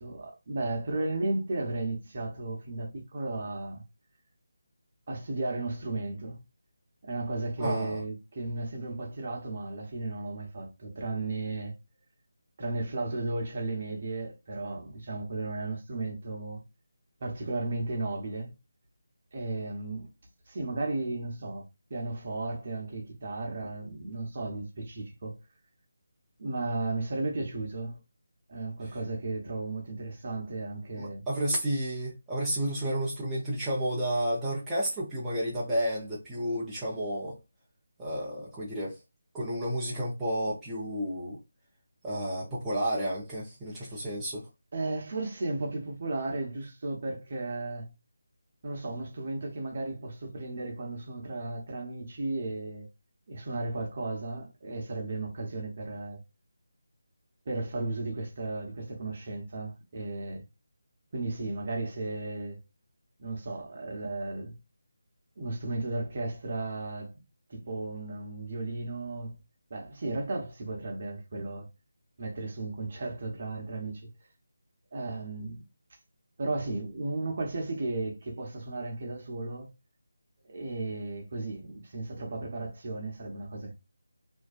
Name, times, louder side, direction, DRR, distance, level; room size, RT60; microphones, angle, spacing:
voice 1, 0.0-3.8 5.1-6.4 7.0-11.7 12.6-16.6 17.2-18.5 19.3-20.1 20.5-25.3 26.4-28.0 28.5-31.3 32.9-33.0 43.8-44.0 44.7-47.9 48.6-52.9 53.3-56.2 57.5-60.4 61.1-62.6 63.2-64.6 65.4-67.1 67.5-69.4 69.7-71.7 72.2-74.0 74.9-75.6 76.4-79.7 80.4-83.7, right 2 dB, 45° right, 0.8 m, -34 dB
voice 2, 7.6-8.0 31.0-37.4 38.0-39.0 39.3-41.4 42.0-44.5, right 1 dB, 10° right, 0.6 m, -31 dB
2.5 x 2.1 x 2.4 m
figure-of-eight pair, 155°, 0 cm